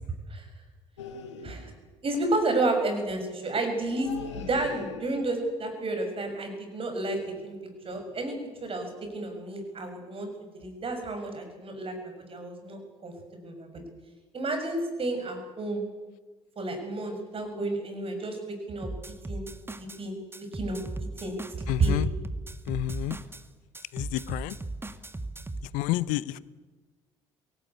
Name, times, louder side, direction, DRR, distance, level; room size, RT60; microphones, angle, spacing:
sound 1, 1.0-1.9 3.9-5.4 7.1-7.5 7.8-8.2 8.5-8.7, left 5 dB, 80° left, 1.5 m, -42 dB
voice 1, 2.0-7.6 7.8-13.1 13.4-13.7 14.3-15.8 16.6-18.9 19.2-19.5 19.7-20.8 21.2-22.0, right 2 dB, 40° right, 5 dB, 6.7 m, -31 dB
sound 2, 18.8-20.0 20.3-23.4 23.7-25.7, right 2 dB, 15° right, 1.9 m, -37 dB
voice 2, 21.7-22.1 22.7-23.2 23.9-24.6 25.7-26.4, left 16 dB, 65° left, 20 dB, 0.7 m, -29 dB
23.5 x 18.0 x 8.5 m, 1.3 s
figure-of-eight pair, 50°, 15 cm